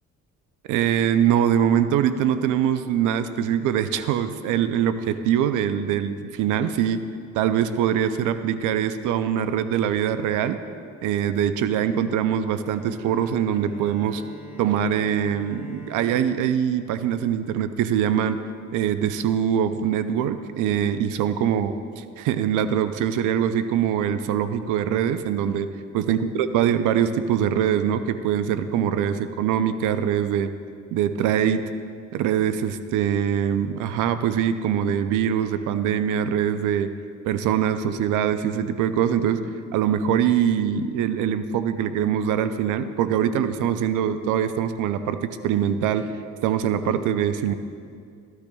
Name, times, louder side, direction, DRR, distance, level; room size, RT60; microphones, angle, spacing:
voice 1, 0.7-7.0 7.3-10.6 11.0-14.2 14.6-18.4 18.7-21.7 22.2-25.7 25.9-30.5 30.9-31.6 32.1-36.9 37.3-39.4 39.7-46.1 46.4-47.5, right 9 dB, 90° right, 11 dB, 0.5 m, -23 dB
Bowed string instrument, 12.5-18.0, equal, 5° right, 1.5 m, -46 dB
13.0 x 12.5 x 2.3 m, 2.2 s
cardioid pair, 90°, 30 cm